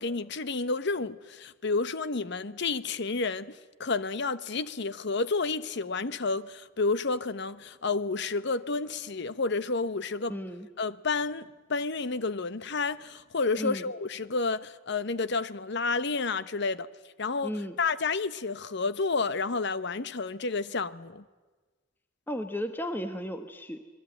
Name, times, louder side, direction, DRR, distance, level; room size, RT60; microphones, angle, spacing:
voice 1, 0.0-10.4 10.8-16.9 17.2-21.2, left 4 dB, 60° left, 0.9 m, -30 dB
voice 2, 10.3-10.7 13.6-13.8 17.4-17.7 22.3-23.8, equal, 10° left, 1.1 m, -34 dB
27.0 x 21.0 x 9.0 m
head